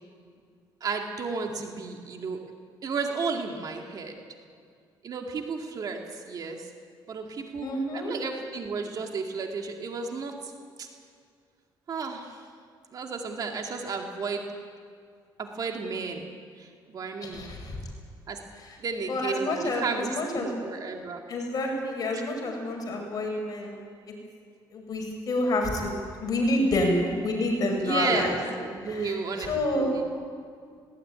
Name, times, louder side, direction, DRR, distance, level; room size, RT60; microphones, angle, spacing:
voice 1, 0.8-2.4 2.8-4.2 5.0-6.7 7.1-7.7 7.9-10.5 10.8-10.9 11.9-12.5 12.9-14.5 15.4-16.3 16.6-17.5 18.3-18.4 18.8-21.2 22.1-22.2 27.7-28.3 28.6-30.1, right 4 dB, 50° right, 3 dB, 2.3 m, -33 dB
voice 2, 7.6-8.1 17.2-17.8 19.1-20.5 21.3-23.7 24.7-26.0 26.2-28.4 28.8-29.9, left 1 dB, 45° left, 1 dB, 5.9 m, -28 dB
19.5 x 18.5 x 9.7 m, 2.2 s
cardioid pair, 110°, 9 cm